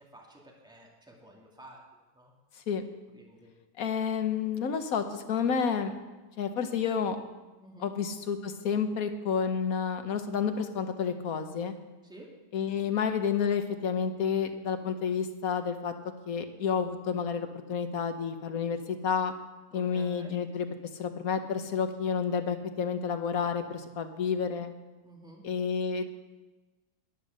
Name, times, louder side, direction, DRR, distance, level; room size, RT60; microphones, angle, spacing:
voice 1, 0.0-1.8 2.1-2.3 3.1-3.5 7.6-7.9 12.0-12.3 19.7-20.4 25.0-25.5, right 1 dB, 5° right, -2 dB, 2.2 m, -51 dB
voice 2, 3.8-5.9 6.4-7.2 7.8-11.7 12.5-15.9 16.3-19.3 19.7-20.7 21.0-24.7 25.4-26.1, left 6 dB, 65° left, 8 dB, 1.4 m, -30 dB
11.0 x 9.8 x 6.5 m, 1.2 s
omnidirectional pair, 1.7 m